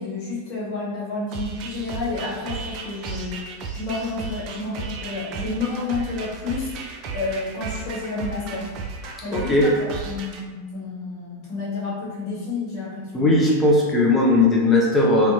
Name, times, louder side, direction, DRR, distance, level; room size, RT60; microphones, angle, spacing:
voice 1, 0.0-8.7 9.2-13.2, left 3 dB, 40° left, -7 dB, 1.1 m, -30 dB
sound 1, 1.3-10.4, right 4 dB, 40° right, 0.3 m, -34 dB
voice 2, 9.3-9.7 13.1-15.3, left 2 dB, 15° left, -3 dB, 0.5 m, -18 dB
2.6 x 2.2 x 2.8 m, 1.4 s
figure-of-eight pair, 90°, 0 cm